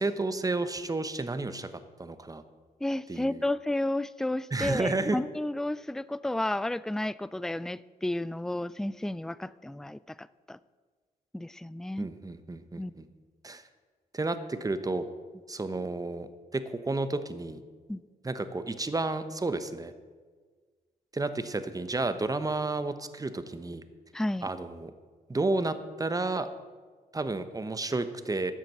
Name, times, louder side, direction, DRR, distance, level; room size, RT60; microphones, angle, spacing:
voice 1, 0.0-1.7 2.0-2.4 3.1-3.5 4.5-5.2 12.0-13.1 13.4-13.6 14.1-15.1 15.5-17.6 18.2-19.9 21.1-23.8 24.4-24.9 25.3-26.5 27.1-28.5, right 2 dB, 20° right, 11 dB, 1.0 m, -31 dB
voice 2, 2.8-10.6 11.3-12.1 12.8-12.9 17.9-18.0 24.1-24.5, left 1 dB, 5° left, 18 dB, 0.3 m, -32 dB
13.0 x 7.5 x 6.2 m, 1.5 s
cardioid pair, 60°, 16 cm